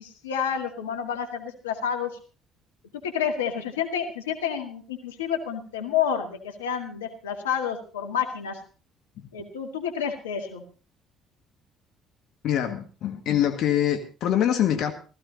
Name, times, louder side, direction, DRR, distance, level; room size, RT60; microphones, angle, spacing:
voice 1, 0.0-2.1 3.0-8.6 9.3-10.6, left 8 dB, 85° left, 4 dB, 2.0 m, -29 dB
voice 2, 12.4-14.9, left 10 dB, 65° left, 6 dB, 1.7 m, -24 dB
16.0 x 14.5 x 4.0 m, 0.36 s
hypercardioid pair, 55°, 0 cm